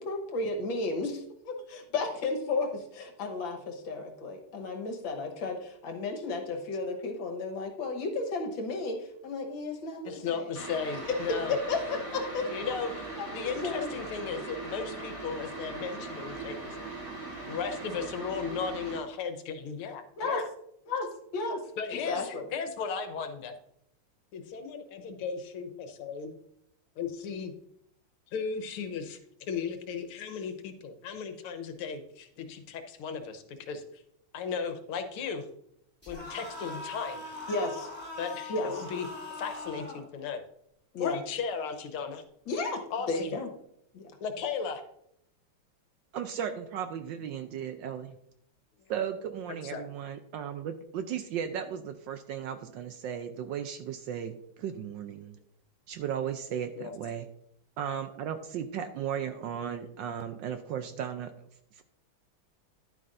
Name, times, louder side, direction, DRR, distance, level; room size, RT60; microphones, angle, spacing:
voice 1, 0.0-10.5 11.1-12.8 13.2-13.9 14.3-14.6 20.2-20.4 20.9-21.6 21.9-22.5 37.5-37.9 38.5-38.8 40.9-41.2 42.5-43.5 43.9-44.1, left 3 dB, 65° left, 4 dB, 1.9 m, -33 dB
voice 2, 10.1-11.6 12.4-13.1 13.3-16.8 17.4-20.5 21.8-23.5 24.3-26.3 27.0-27.5 28.3-34.0 34.3-35.5 36.1-37.4 38.2-39.1 39.4-40.4 41.0-42.2 42.9-43.3 44.2-44.8 49.7-49.8 56.8-56.9, left 6 dB, 90° left, 8 dB, 1.9 m, -36 dB
sound 1, 10.5-19.0, right 3 dB, 25° right, 3.8 m, -40 dB
sound 2, 36.0-40.0, left 2 dB, 5° left, 2.6 m, -41 dB
voice 3, 46.1-48.2 48.9-55.4 55.9-57.3 57.8-61.3 61.7-61.8, right 8 dB, 75° right, 9 dB, 1.1 m, -35 dB
11.0 x 9.5 x 2.6 m, 0.74 s
omnidirectional pair, 2.4 m